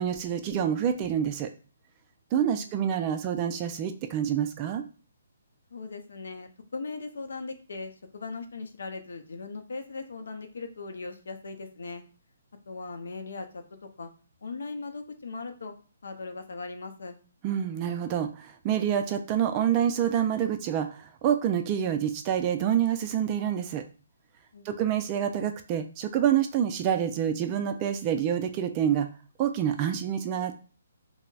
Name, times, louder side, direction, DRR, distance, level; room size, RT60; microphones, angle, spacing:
voice 1, 0.0-1.5 2.3-4.8 17.4-23.8 24.7-29.1 29.4-30.5, right 9 dB, 25° right, 7 dB, 0.3 m, -27 dB
voice 2, 2.3-2.8 5.7-12.0 12.7-14.1 14.4-15.7 16.0-17.2 24.5-24.9, left 3 dB, 75° left, 6 dB, 0.5 m, -39 dB
3.8 x 2.0 x 2.3 m, 0.38 s
hypercardioid pair, 155°, 0 cm